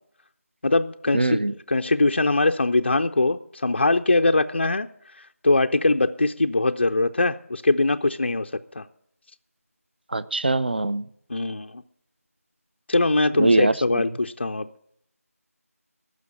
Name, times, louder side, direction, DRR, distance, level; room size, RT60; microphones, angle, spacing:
voice 1, 0.6-1.4 1.7-4.9 5.4-8.5 8.8-8.9 11.3-11.8 12.9-14.7, left 2 dB, 45° left, 0.4 m, -22 dB
voice 2, 1.1-1.5 10.1-11.1 13.4-14.1, right 2 dB, 40° right, 0.5 m, -22 dB
15.5 x 6.3 x 8.2 m
figure-of-eight pair, 170°, 8 cm